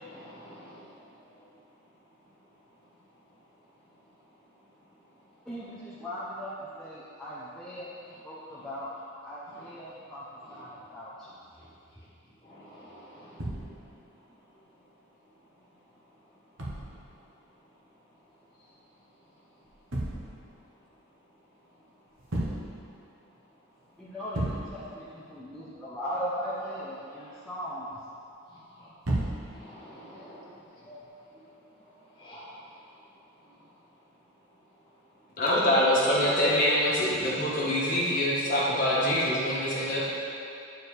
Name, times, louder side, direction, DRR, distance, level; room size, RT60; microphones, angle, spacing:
voice 1, 0.0-0.7 9.5-9.7 12.5-13.2 29.5-30.4 30.9-31.0 32.2-32.5, equal, 20° left, -9 dB, 1.6 m, -48 dB
voice 2, 5.5-6.5 6.8-8.0 8.2-8.9 9.2-10.2 10.5-11.1 24.0-27.9, equal, 5° left, -10 dB, 0.6 m, -38 dB
sound 1, 13.4-14.0 16.6-17.2 19.6-20.6 22.2-22.9 23.3-23.4 23.8-23.9 24.3-25.0 29.0-29.7 30.8-31.1, right 1 dB, 60° right, 1.1 m, -33 dB
voice 3, 35.4-40.0, equal, 40° left, -7 dB, 1.3 m, -25 dB
9.0 x 4.6 x 3.3 m, 2.7 s
head